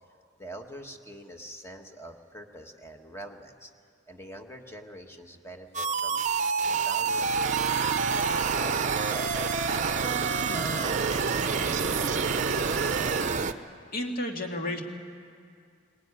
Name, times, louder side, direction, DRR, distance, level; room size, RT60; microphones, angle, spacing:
voice 1, 0.4-3.7 4.1-6.3 6.6-9.2, equal, 15° left, 4 dB, 1.5 m, -45 dB
sound 1, 5.7-13.5, right 5 dB, 40° right, 0.8 m, -28 dB
Idling, 7.0-13.6, right 6 dB, 70° right, 0.5 m, -33 dB
voice 2, 13.9-14.8, left 1 dB, 45° left, 2 dB, 2.3 m, -31 dB
21.0 x 19.5 x 9.8 m, 2.3 s
head